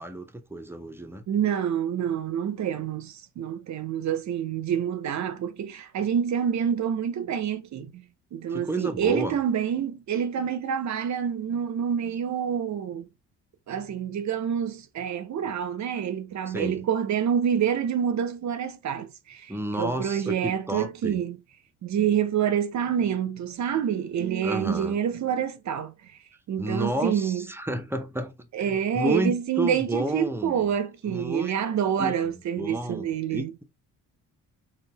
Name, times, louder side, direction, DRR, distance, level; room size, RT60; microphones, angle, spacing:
voice 1, 0.0-1.2 8.5-9.4 16.5-16.8 19.5-21.2 24.4-25.0 26.6-30.7 31.0-31.5 32.0-32.1 32.6-33.6, right 1 dB, 5° right, 0.6 m, -31 dB
voice 2, 1.3-8.0 8.3-13.1 13.7-19.5 19.8-21.4 21.8-25.9 26.5-27.4 28.5-33.5, right 8 dB, 50° right, 0.6 m, -27 dB
3.8 x 2.2 x 2.3 m
hypercardioid pair, 55°, 37 cm